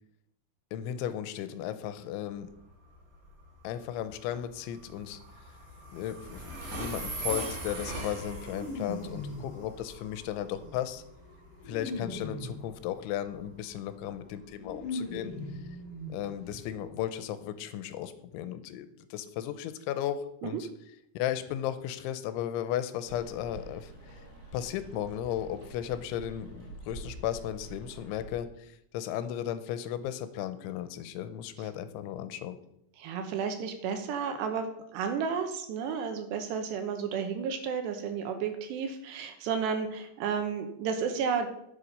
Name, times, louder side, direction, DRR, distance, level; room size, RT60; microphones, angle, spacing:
voice 1, 0.7-2.5 3.6-5.2 5.9-11.0 11.7-15.3 16.1-20.7 21.1-24.2 24.5-32.6, left 11 dB, 85° left, 11 dB, 3.0 m, -35 dB
Train, 2.3-17.0, right 2 dB, 45° right, 3.4 m, -42 dB
sound 1, 8.4-9.6 10.3-12.7 14.0-14.1 14.4-16.6 16.9-17.0 17.3-17.4, left 2 dB, 50° left, 1.9 m, -40 dB
Rain, 23.0-28.4, right 3 dB, 60° right, 4.7 m, -47 dB
voice 2, 33.0-41.5, right 6 dB, 75° right, 6 dB, 2.8 m, -32 dB
11.5 x 7.5 x 5.4 m, 0.78 s
omnidirectional pair, 5.4 m